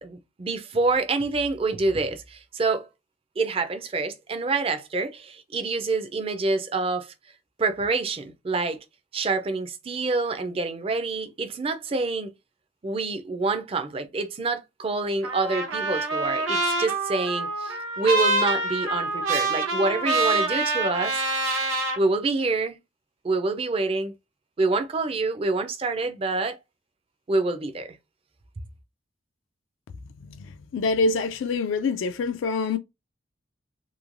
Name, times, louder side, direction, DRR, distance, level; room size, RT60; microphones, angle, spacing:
voice 1, 0.0-2.9 3.4-7.1 7.6-8.8 9.1-12.3 12.8-21.2 22.0-22.8 23.2-24.1 24.6-26.6 27.3-28.0, right 3 dB, 30° right, 0.4 m, -27 dB
Trumpet, 15.2-22.0, right 2 dB, 85° right, 0.8 m, -26 dB
voice 2, 30.7-32.8, left 3 dB, 75° left, 0.3 m, -25 dB
3.0 x 2.2 x 2.5 m
head